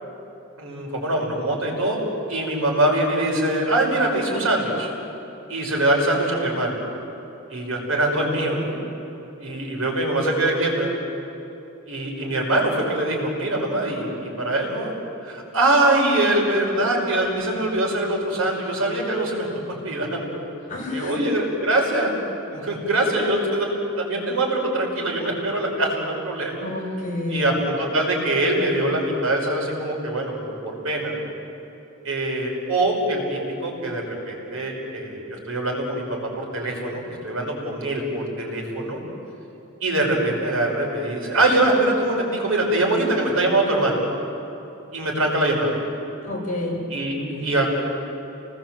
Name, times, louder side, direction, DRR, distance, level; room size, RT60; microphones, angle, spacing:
voice 1, 0.6-2.0 2.3-4.9 5.5-6.8 7.5-8.7 9.4-10.9 11.9-14.9 15.2-19.5 19.8-20.4 20.9-22.2 22.5-26.5 27.3-31.3 32.0-39.0 39.8-44.0 44.9-45.7 46.9-47.1 47.4-47.7, right 1 dB, 80° right, -1 dB, 5.7 m, -23 dB
voice 2, 20.7-21.2 26.6-27.6 46.2-46.8 47.1-47.6, left 1 dB, 40° left, -3 dB, 6.3 m, -29 dB
30.0 x 19.5 x 7.8 m, 2.9 s
head